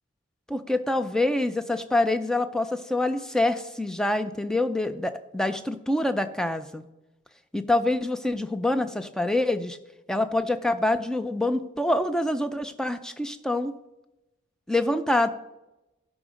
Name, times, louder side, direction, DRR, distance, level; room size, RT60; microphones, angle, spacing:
voice 1, 0.5-6.8 7.5-9.8 10.1-13.7 14.7-15.3, left 1 dB, 5° left, 10 dB, 0.4 m, -26 dB
12.5 x 5.0 x 5.1 m, 0.96 s
head